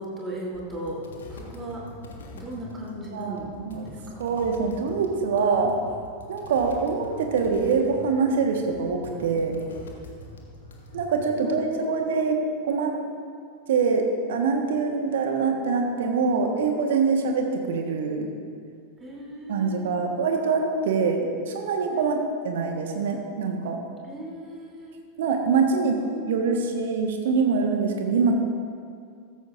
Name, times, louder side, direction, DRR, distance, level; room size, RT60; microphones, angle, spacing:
voice 1, 0.0-1.9 2.3-3.5 3.8-4.2 11.3-12.4 19.0-20.1 21.9-22.5 24.0-25.0 25.9-26.6, right 1 dB, 15° right, -4 dB, 3.1 m, -37 dB
sound 1, 0.5-11.2, left 1 dB, 65° left, 1.5 m, -44 dB
voice 2, 3.1-3.8 4.2-5.7 6.3-9.6 10.9-12.4 12.6-12.9 13.7-18.3 19.5-22.2 22.4-23.8 25.2-26.0 26.3-28.4, right 5 dB, 60° right, 3 dB, 1.4 m, -24 dB
15.0 x 14.0 x 2.6 m, 2.3 s
figure-of-eight pair, 90°, 0 cm